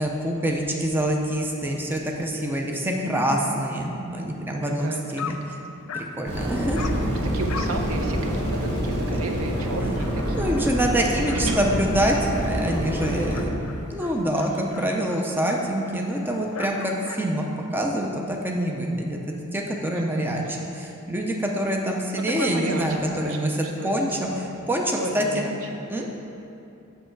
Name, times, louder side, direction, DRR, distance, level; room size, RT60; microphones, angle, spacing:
voice 1, 0.0-5.4 5.9-6.8 10.3-13.5 13.9-17.5 17.7-24.3 24.7-25.4 25.9-26.1, right 1 dB, 10° right, 0 dB, 0.5 m, -26 dB
voice 2, 2.8-3.6 4.6-5.5 6.8-10.5 11.5-11.6 14.4-15.1 19.9-20.7 22.2-23.9 24.3-24.5 25.0-25.7, right 2 dB, 80° right, 3 dB, 0.7 m, -33 dB
Dog, 4.8-4.9 5.2-5.5 5.9-6.2 6.7-7.0 7.5-7.8 8.2-8.3 8.7-8.8 9.1-9.2 9.5-17.3, left 6 dB, 80° left, 0.5 m, -40 dB
sound 1, 6.3-13.5, equal, 50° right, 1.5 m, -26 dB
6.7 x 6.4 x 4.6 m, 2.8 s
head